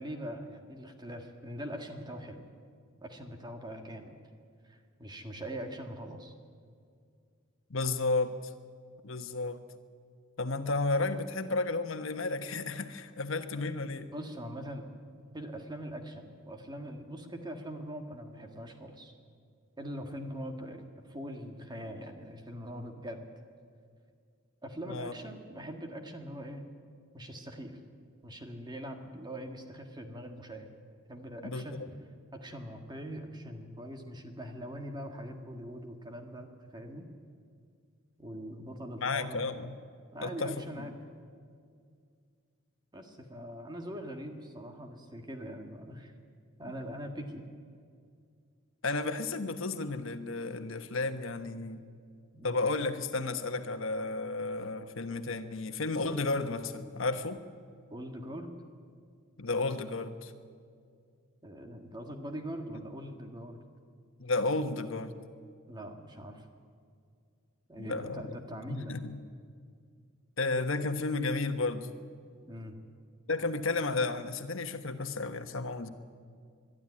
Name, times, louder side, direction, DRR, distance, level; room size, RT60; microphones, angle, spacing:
voice 1, 0.0-2.4 3.0-4.2 4.6-6.3 14.1-14.9 15.3-19.1 19.8-20.8 21.1-23.3 24.6-26.7 27.1-27.8 28.2-30.7 31.1-31.9 32.3-37.1 38.2-39.7 40.1-41.0 42.9-46.1 46.6-47.4 52.3-52.6 57.9-58.5 61.4-63.6 65.7-66.4 67.7-69.0 72.5-72.8, equal, 20° right, 4 dB, 1.7 m, -42 dB
voice 2, 7.7-8.4 9.0-9.6 10.4-14.1 24.9-25.1 31.4-31.6 39.0-39.7 40.2-40.8 48.8-51.9 52.4-57.4 59.4-60.3 64.2-65.1 67.8-68.3 68.7-69.2 70.4-71.9 73.3-75.9, left 3 dB, 70° left, 8 dB, 1.3 m, -32 dB
22.5 x 12.0 x 9.8 m, 2.2 s
head